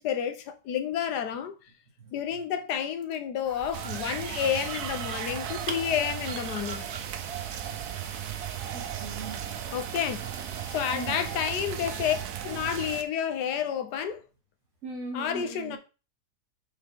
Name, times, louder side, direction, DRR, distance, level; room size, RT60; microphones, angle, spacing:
voice 1, 0.0-1.6 2.1-6.8 9.7-10.3 10.7-12.2 12.4-14.2 15.1-15.8, left 8 dB, 85° left, 1.4 m, -30 dB
sound 1, 3.4-12.2, right 5 dB, 40° right, 0.5 m, -43 dB
sound 2, 3.7-13.0, right 10 dB, 75° right, 1.2 m, -36 dB
voice 2, 8.7-9.5 10.9-11.3 14.8-15.8, right 3 dB, 60° right, 3.0 m, -40 dB
7.0 x 4.3 x 3.6 m
omnidirectional pair, 1.7 m